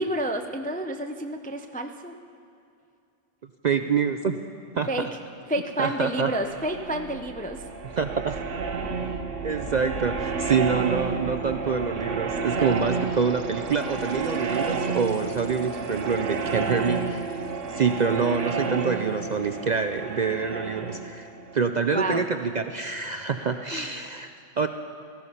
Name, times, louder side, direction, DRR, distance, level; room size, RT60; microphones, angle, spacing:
voice 1, 0.0-2.1 4.9-5.1 5.5-7.6 21.9-22.2 23.7-23.8, right 1 dB, 15° left, 6 dB, 0.3 m, -29 dB
voice 2, 3.6-4.4 4.7-5.1 5.8-6.3 8.0-8.4 9.4-17.3 17.7-24.7, right 5 dB, 50° right, 7 dB, 0.5 m, -26 dB
sound 1, 6.1-22.7, right 4 dB, 80° right, 1.3 m, -31 dB
18.0 x 14.5 x 5.6 m, 2.5 s
omnidirectional pair, 1.3 m